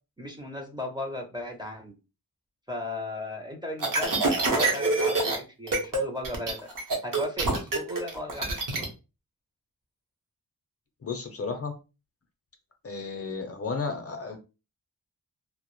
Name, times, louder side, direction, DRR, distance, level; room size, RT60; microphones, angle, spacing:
voice 1, 0.2-1.9 2.7-6.6 7.0-8.5 8.8-8.9, left 1 dB, 10° right, 2 dB, 0.5 m, -36 dB
sound 1, 3.8-5.4 5.7-6.0 6.2-8.9, right 2 dB, 60° right, 0.8 m, -26 dB
voice 2, 11.0-11.7 12.8-14.4, left 4 dB, 40° left, 4 dB, 0.5 m, -33 dB
2.1 x 2.0 x 2.9 m, 0.30 s
wide cardioid pair, 90°, 36 cm